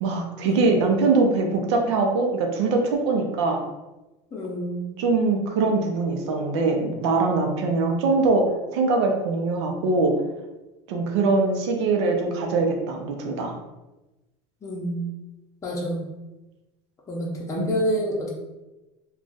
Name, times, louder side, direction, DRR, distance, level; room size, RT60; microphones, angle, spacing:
voice 1, 0.0-3.6 5.0-8.4 8.7-10.1 10.9-13.6 17.6-17.8, right 3 dB, 85° right, 3 dB, 0.6 m, -22 dB
voice 2, 4.3-5.0 14.6-15.0 15.6-16.0 17.1-18.3, equal, 20° left, -3 dB, 0.7 m, -28 dB
2.4 x 2.3 x 3.9 m, 1.0 s
supercardioid pair, 130°, 14 cm